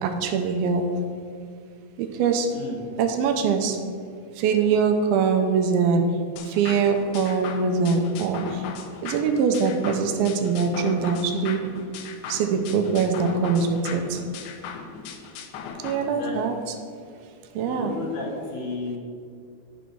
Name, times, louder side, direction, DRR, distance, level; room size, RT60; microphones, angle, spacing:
voice 1, 0.0-0.8 2.0-2.5 3.0-3.8 4.4-6.0 6.5-8.6 9.0-11.6 12.3-14.2 15.8-16.5 17.6-18.0, right 5 dB, 80° right, 5 dB, 2.4 m, -23 dB
sound 1, 6.4-16.0, left 6 dB, 80° left, 2.6 m, -38 dB
voice 2, 15.9-16.3 17.6-19.0, left 3 dB, 55° left, -3 dB, 3.3 m, -33 dB
11.5 x 4.1 x 6.1 m, 2.3 s
omnidirectional pair, 4.7 m